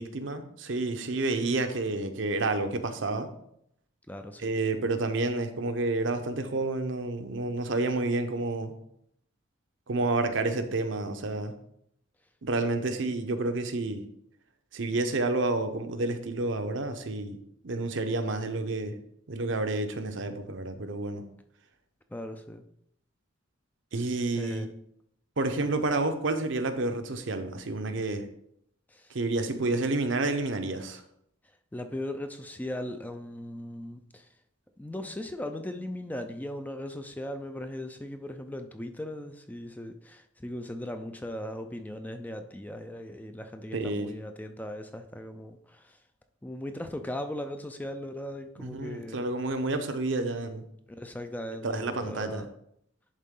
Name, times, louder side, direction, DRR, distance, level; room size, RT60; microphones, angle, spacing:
voice 1, 0.0-3.3 4.4-8.7 9.9-11.5 12.4-14.1 14.7-17.4 17.6-19.0 19.3-21.3 23.9-24.7 25.4-28.3 29.1-31.0 43.7-44.1 48.6-50.6 51.6-52.4, right 2 dB, 65° right, 7 dB, 0.8 m, -29 dB
voice 2, 4.1-4.6 22.1-22.6 24.4-24.7 28.9-29.2 31.7-34.3 34.8-46.0 46.4-49.3 50.9-52.5, left 1 dB, 10° left, 7 dB, 0.4 m, -38 dB
10.5 x 3.7 x 3.7 m, 0.73 s
head